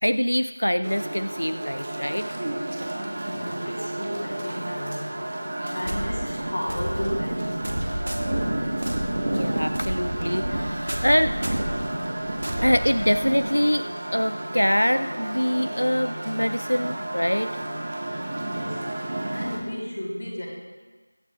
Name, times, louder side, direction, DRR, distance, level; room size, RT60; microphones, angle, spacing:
voice 1, 0.0-2.3 9.3-11.6 12.6-17.5, equal, 90° left, 12 dB, 0.3 m, -24 dB
sound 1, 0.8-19.6, right 1 dB, 30° right, 1.3 m, -31 dB
voice 2, 3.3-5.1 5.7-8.0 12.2-12.5 18.5-18.9 19.3-20.5, equal, 45° left, -3 dB, 3.4 m, -33 dB
sound 2, 5.8-13.5, right 1 dB, 60° right, 1.7 m, -32 dB
22.5 x 8.7 x 2.3 m, 1.3 s
figure-of-eight pair, 175°, 0 cm